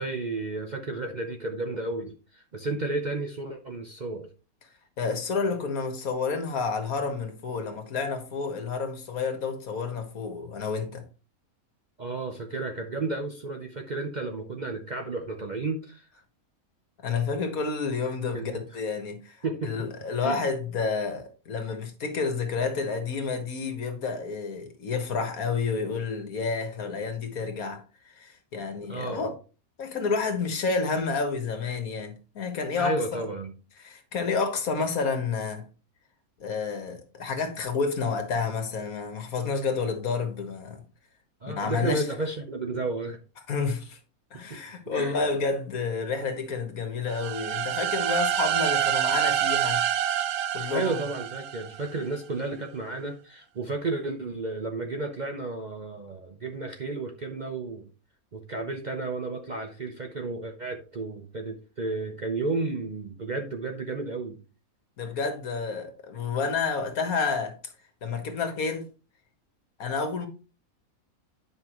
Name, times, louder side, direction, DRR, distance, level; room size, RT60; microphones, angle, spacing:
voice 1, 0.0-4.3 12.0-16.1 18.3-18.6 19.4-19.9 20.2-20.4 28.8-29.3 32.8-33.5 39.8-39.9 41.4-43.2 44.5-44.6 44.9-45.2 50.7-57.9 58.3-64.4, right 3 dB, 45° right, 0.6 m, -32 dB
voice 2, 5.0-11.0 17.0-27.8 28.1-29.3 29.8-33.3 33.8-35.6 36.4-40.8 41.5-42.1 43.5-44.0 44.3-49.8 50.5-51.0 65.0-67.6 68.0-68.8 69.8-70.3, left 4 dB, 70° left, 1.8 m, -30 dB
sound 1, 47.1-51.9, right 11 dB, 80° right, 1.2 m, -27 dB
9.7 x 5.4 x 3.0 m
omnidirectional pair, 1.5 m